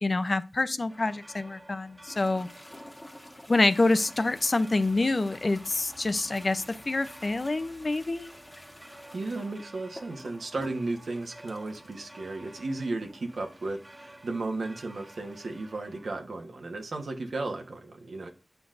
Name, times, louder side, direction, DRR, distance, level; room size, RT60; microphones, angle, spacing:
voice 1, 0.0-2.5 3.5-8.3, left 2 dB, 50° left, 0.6 m, -27 dB
sound 1, 0.9-16.2, right 1 dB, 25° right, 1.5 m, -51 dB
sound 2, 2.1-15.7, left 1 dB, 25° left, 1.2 m, -51 dB
voice 2, 9.1-18.3, right 2 dB, 85° right, 1.2 m, -34 dB
7.9 x 5.9 x 2.6 m
cardioid pair, 50°, 0 cm